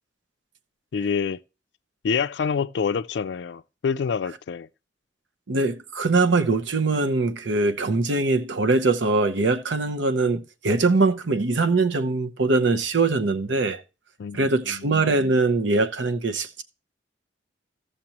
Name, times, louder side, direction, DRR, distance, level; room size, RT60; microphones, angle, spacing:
voice 1, 0.9-1.4 2.0-4.7 14.2-14.9, left 6 dB, 65° left, 0.4 m, -27 dB
voice 2, 5.5-13.8 14.3-16.6, right 3 dB, 80° right, 0.8 m, -22 dB
14.5 x 6.7 x 2.9 m
head